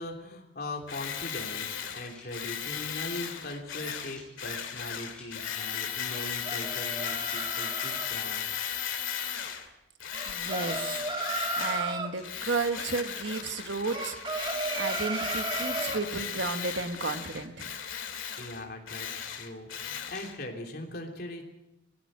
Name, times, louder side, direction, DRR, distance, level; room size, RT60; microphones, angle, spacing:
voice 1, 0.0-8.4 18.4-21.4, left 1 dB, 50° left, 2 dB, 3.2 m, -40 dB
Tools, 0.9-9.7 10.0-11.9 12.2-20.3, left 8 dB, 90° left, 2.6 m, -36 dB
sound 1, 2.1-2.3 3.1-3.3 4.1-4.3 5.1-5.3 6.1-6.3 7.1-7.3 8.1-8.3 9.1-9.2 10.1-10.3 11.1-11.3 12.1-12.3 13.1-13.3 14.1-14.3 15.1-15.3 16.1-16.3 17.1-17.3 18.1-18.3 19.1-19.3 20.1-20.3, left 2 dB, 5° left, 6.8 m, -51 dB
sound 2, 6.1-8.1 10.1-12.1 13.9-16.0, right 3 dB, 25° right, 2.0 m, -34 dB
voice 2, 10.3-10.8 11.6-14.2 14.8-17.7, right 3 dB, 70° right, 8 dB, 1.5 m, -33 dB
20.5 x 17.0 x 7.6 m, 0.92 s
head